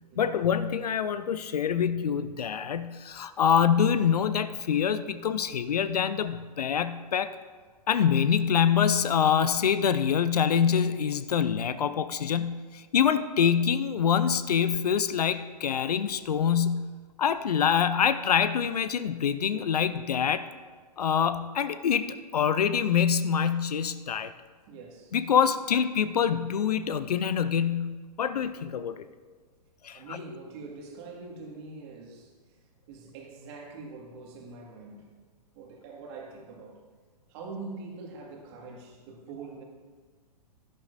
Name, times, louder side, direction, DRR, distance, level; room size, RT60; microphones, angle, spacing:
voice 1, 0.2-7.3 7.9-16.9 17.2-20.4 21.0-24.3 25.1-29.0 29.8-30.0, left 7 dB, 65° left, 13 dB, 0.6 m, -25 dB
voice 2, 24.7-25.2 29.9-32.6 32.9-35.1 35.5-36.8 37.3-39.6, right 3 dB, 40° right, 0 dB, 2.0 m, -43 dB
11.5 x 11.0 x 2.7 m, 1.4 s
figure-of-eight pair, 115°, 21 cm